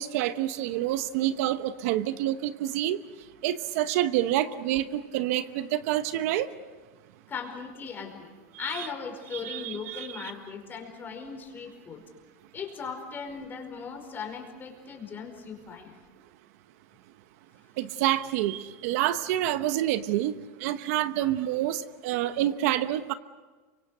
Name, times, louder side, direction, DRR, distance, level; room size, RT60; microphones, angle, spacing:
voice 1, 0.0-3.0 3.4-6.5 8.7-8.9 9.3-10.3 17.8-20.3 20.6-23.1, right 13 dB, 60° right, 12 dB, 1.0 m, -28 dB
voice 2, 7.3-8.3 8.6-12.0 12.5-15.9, left 5 dB, 25° left, 3 dB, 5.1 m, -38 dB
28.0 x 24.5 x 6.7 m, 1.3 s
supercardioid pair, 135°, 9 cm